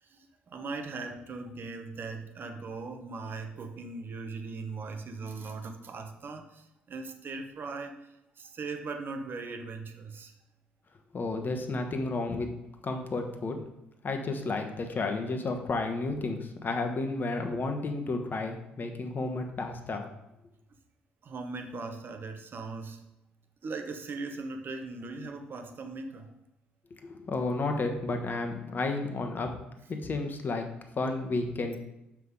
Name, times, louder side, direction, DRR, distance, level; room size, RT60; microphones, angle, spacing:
voice 1, 0.0-10.3 21.2-23.0 23.6-26.3, right 3 dB, 45° right, 5 dB, 1.0 m, -39 dB
voice 2, 11.1-12.5 12.8-13.6 14.0-20.0 27.0-29.5 29.9-30.6 31.0-31.8, left 3 dB, 40° left, 5 dB, 1.2 m, -32 dB
7.3 x 5.7 x 3.7 m, 0.89 s
figure-of-eight pair, 45°, 5 cm